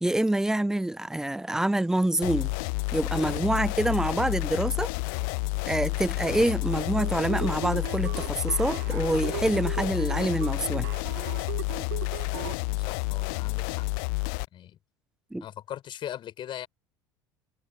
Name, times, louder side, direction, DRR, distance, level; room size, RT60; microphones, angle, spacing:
voice 1, 0.0-2.5 2.9-4.9 5.7-10.9 15.3-15.4, right 1 dB, 5° right, 0.5 m, -26 dB
sound 1, 2.2-14.5, left 34 dB, 55° left, 0.8 m, -30 dB
sound 2, 6.7-12.5, right 18 dB, 65° right, 1.0 m, -38 dB
voice 2, 12.7-13.9 14.5-14.8 15.4-16.7, left 11 dB, 40° left, 6.0 m, -40 dB
figure-of-eight pair, 65°, 12 cm